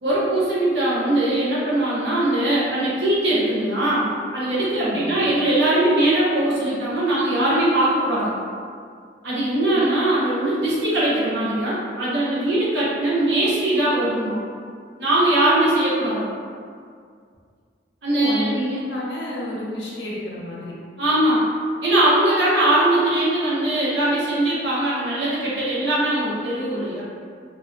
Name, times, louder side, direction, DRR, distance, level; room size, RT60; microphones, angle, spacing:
voice 1, 0.0-4.1 4.3-8.3 9.2-14.4 15.0-16.3 18.0-18.8 21.0-21.5 21.8-27.0, right 1 dB, 70° right, -8 dB, 0.6 m, -21 dB
voice 2, 4.8-5.1 9.6-9.8 18.1-20.7, equal, 70° left, -5 dB, 0.6 m, -30 dB
2.4 x 2.1 x 2.4 m, 2.2 s
head